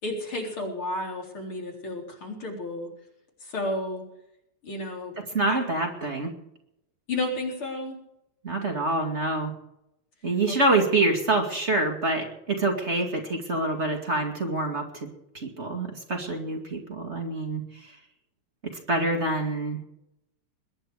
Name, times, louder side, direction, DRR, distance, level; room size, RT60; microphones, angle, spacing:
voice 1, 0.0-2.9 3.4-4.0 4.6-5.2 5.5-5.6 7.1-8.0 10.5-10.8, left 1 dB, 75° left, -1 dB, 4.9 m, -32 dB
voice 2, 5.3-6.3 8.4-9.5 10.2-15.1 15.3-18.0 18.6-19.8, right 2 dB, 30° right, 2 dB, 2.4 m, -26 dB
21.5 x 10.5 x 4.9 m, 0.81 s
omnidirectional pair, 2.4 m